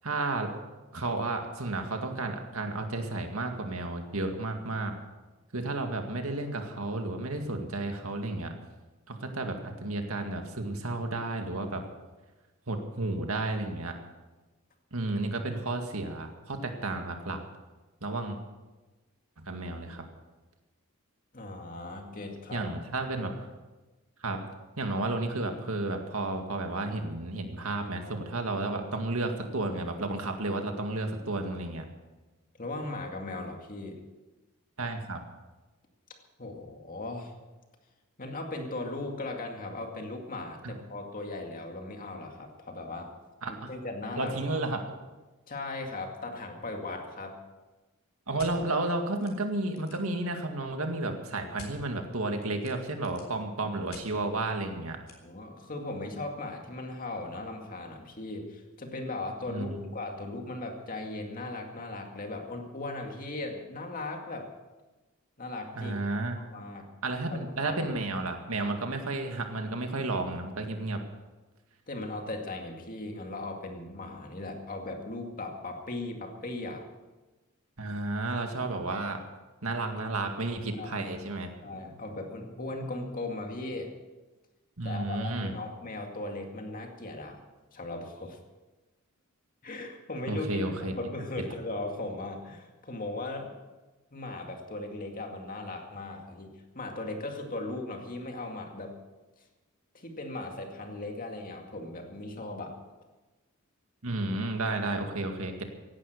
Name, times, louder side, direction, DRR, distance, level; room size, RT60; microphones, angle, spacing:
voice 1, 0.0-0.5 0.9-5.0 5.5-8.5 9.1-11.8 12.7-13.9 14.9-17.4 18.0-18.4 19.4-20.0 22.5-23.5 24.2-24.4 24.8-31.9 34.8-35.2 40.6-40.7 43.4-43.7 44.2-44.8 48.3-55.0 59.5-59.9 65.8-66.4 67.0-71.0 77.8-79.2 79.6-81.5 84.8-85.5 90.3-90.9 104.0-105.6, right 2 dB, 80° right, 4 dB, 2.0 m, -32 dB
voice 2, 21.3-22.7 32.6-34.0 36.4-37.3 38.2-43.1 43.5-44.4 45.5-47.4 55.2-64.5 65.4-66.0 66.3-66.9 67.3-67.8 71.9-76.8 80.8-81.1 81.6-84.0 84.8-87.4 87.7-88.4 89.6-93.5 94.1-99.0 99.9-102.7, left 2 dB, 40° left, 3 dB, 2.2 m, -38 dB
sound 1, 48.4-48.5 49.2-49.3 49.6-50.1 51.6-51.7 52.6-53.3 53.9-54.1 55.1-55.2, left 4 dB, 65° left, 3.8 m, -48 dB
17.0 x 11.5 x 6.7 m, 1.2 s
head